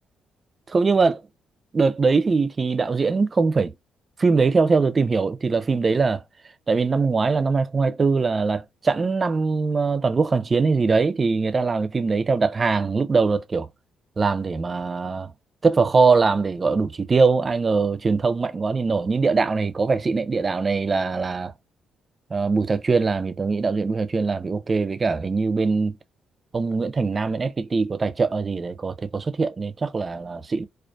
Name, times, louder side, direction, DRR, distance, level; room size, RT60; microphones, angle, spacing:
voice 1, 0.7-1.2 1.7-3.7 4.2-6.2 6.7-13.7 14.2-15.3 15.6-21.5 22.3-26.0 26.5-30.6, right 4 dB, 30° right, 0.3 m, -22 dB
2.5 x 2.3 x 2.2 m
cardioid pair, 90°, 0 cm